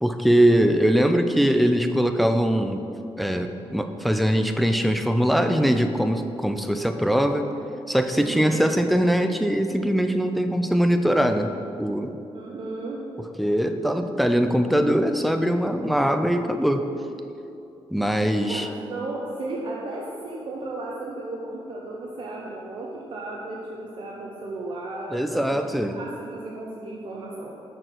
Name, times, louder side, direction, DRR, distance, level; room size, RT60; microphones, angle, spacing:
voice 1, 0.0-2.8 3.2-7.5 7.9-11.5 11.8-12.2 13.4-16.9 17.9-18.7 25.1-26.0, equal, ahead, 7 dB, 0.3 m, -22 dB
voice 2, 8.1-8.6 12.3-13.0 18.4-25.6 25.9-27.5, right 2 dB, 55° right, -3 dB, 0.7 m, -35 dB
6.5 x 4.4 x 6.0 m, 2.7 s
wide cardioid pair, 160°, 10 cm